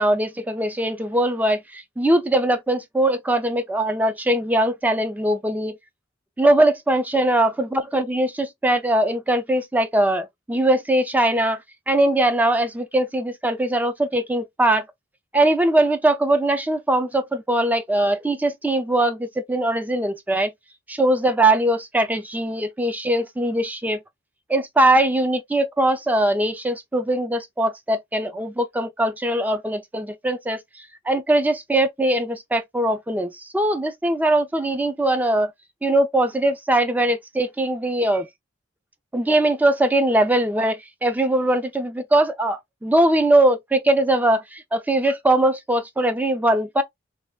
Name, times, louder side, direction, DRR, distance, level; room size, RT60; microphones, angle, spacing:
voice 1, 0.0-5.8 6.4-11.6 11.9-14.8 15.3-20.5 20.9-24.0 24.5-30.6 31.1-35.5 35.8-38.3 39.1-46.8, right 1 dB, 10° right, 0.3 m, -21 dB
3.3 x 2.2 x 2.2 m
head